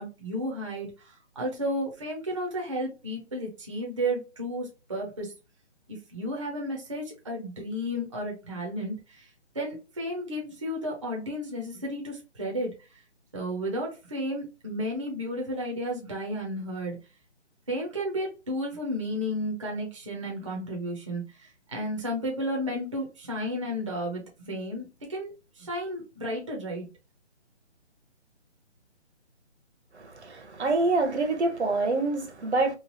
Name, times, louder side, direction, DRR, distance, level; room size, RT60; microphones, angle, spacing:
voice 1, 0.0-5.3 5.9-13.0 13.3-17.0 17.7-26.9, equal, 30° right, 0.5 m, -33 dB
voice 2, 30.0-32.7, right 3 dB, 70° right, 0.8 m, -26 dB
3.0 x 2.4 x 2.8 m
hypercardioid pair, 165°, 35 cm